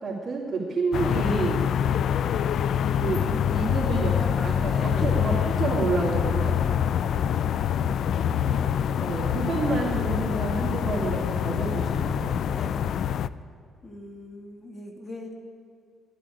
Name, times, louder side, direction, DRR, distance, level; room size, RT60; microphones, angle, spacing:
voice 1, 0.0-1.6 3.0-4.2 4.4-6.6 9.0-12.3, right 4 dB, 30° right, -6 dB, 2.9 m, -29 dB
sound 1, 0.9-13.3, left 9 dB, 65° left, 0.4 m, -25 dB
voice 2, 4.1-5.2 8.4-9.0 12.4-12.8 13.8-15.3, left 1 dB, 25° left, 3 dB, 2.3 m, -40 dB
11.5 x 9.0 x 10.0 m, 2.4 s
cardioid pair, 90°, 0 cm